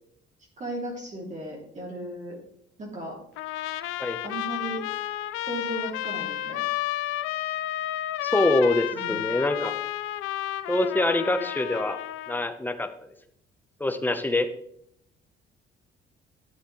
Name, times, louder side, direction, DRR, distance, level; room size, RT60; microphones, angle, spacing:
voice 1, 0.6-2.4 2.8-3.2 4.2-4.8 5.4-6.6 8.9-9.3, right 1 dB, 35° right, -2 dB, 3.0 m, -35 dB
Trumpet, 3.4-12.5, left 14 dB, 85° left, 0.5 m, -31 dB
voice 2, 8.2-9.8 10.7-12.0 12.3-13.1 13.8-14.5, left 2 dB, 10° left, 8 dB, 1.0 m, -25 dB
12.0 x 7.8 x 3.2 m, 0.71 s
cardioid pair, 85°, 21 cm